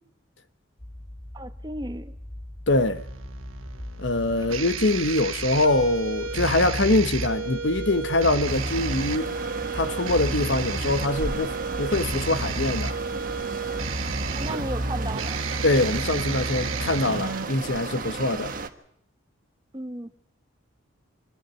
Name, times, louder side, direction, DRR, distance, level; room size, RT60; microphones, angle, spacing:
sound 1, 0.8-14.9, left 1 dB, 15° left, 1.0 m, -41 dB
voice 1, 1.3-2.1 14.3-15.4 19.7-20.1, right 1 dB, 20° right, 1.3 m, -34 dB
voice 2, 2.7-3.0 4.0-9.3 9.7-13.0 15.6-18.5, left 2 dB, 60° left, 1.2 m, -24 dB
sound 2, 2.9-17.4, right 4 dB, 80° right, 1.7 m, -32 dB
sound 3, 8.5-18.7, right 3 dB, 40° right, 1.4 m, -34 dB
26.5 x 11.0 x 9.3 m
head